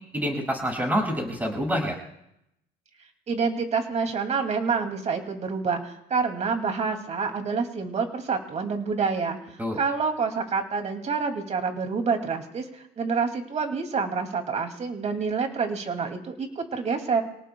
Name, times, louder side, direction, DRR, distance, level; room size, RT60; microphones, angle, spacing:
voice 1, 0.1-2.0 9.6-9.8, equal, 10° right, 0 dB, 6.5 m, -27 dB
voice 2, 3.3-9.4 9.8-17.2, right 5 dB, 40° right, 5 dB, 2.6 m, -27 dB
28.0 x 18.5 x 2.3 m, 0.79 s
cardioid pair, 110°, 17 cm